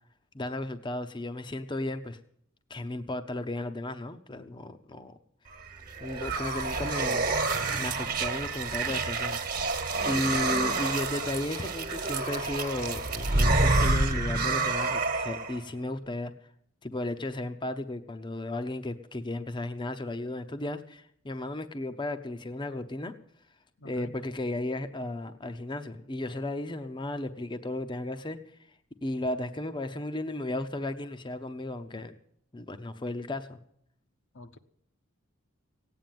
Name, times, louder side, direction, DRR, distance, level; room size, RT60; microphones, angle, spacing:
voice 1, 0.3-2.2 2.7-5.2 6.0-7.3 7.8-9.7 10.0-16.3 16.8-23.1 23.8-28.4 29.0-32.1 32.5-33.6, left 1 dB, 20° left, 8 dB, 0.7 m, -34 dB
sound 1, 5.6-15.6, right 3 dB, 45° right, 1.4 m, -28 dB
voice 2, 23.8-24.1 34.3-34.6, left 2 dB, 60° left, 7 dB, 0.9 m, -45 dB
16.5 x 9.1 x 9.2 m, 0.69 s
head